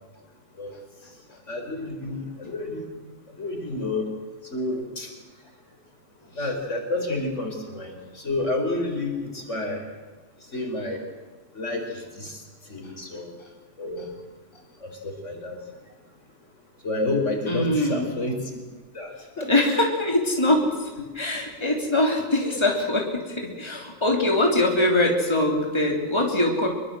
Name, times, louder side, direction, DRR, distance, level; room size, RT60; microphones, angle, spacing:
voice 1, 1.5-2.8 3.3-4.1 4.5-5.1 6.3-9.8 10.5-11.0 11.5-11.9 12.1-12.4 12.7-13.3 13.8-14.1 14.8-15.6 16.8-18.4 18.9-19.7 22.4-22.6, left 2 dB, 60° left, 3 dB, 5.1 m, -29 dB
voice 2, 17.5-18.1 19.5-20.9 21.1-26.7, left 1 dB, 20° left, 1 dB, 3.4 m, -23 dB
25.5 x 23.0 x 7.7 m, 1.3 s
omnidirectional pair, 1.4 m